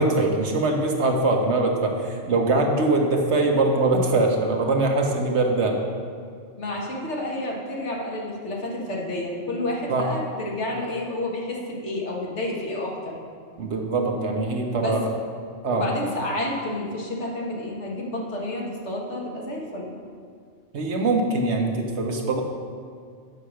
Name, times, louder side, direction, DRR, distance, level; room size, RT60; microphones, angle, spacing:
voice 1, 0.0-5.8 9.9-10.1 13.6-15.0 15.6-15.9 20.7-22.4, right 2 dB, 70° right, 2 dB, 1.3 m, -22 dB
voice 2, 6.6-13.2 14.8-15.0 15.6-20.0, left 1 dB, 70° left, -2 dB, 1.8 m, -30 dB
9.2 x 5.7 x 6.3 m, 2.1 s
omnidirectional pair, 1.2 m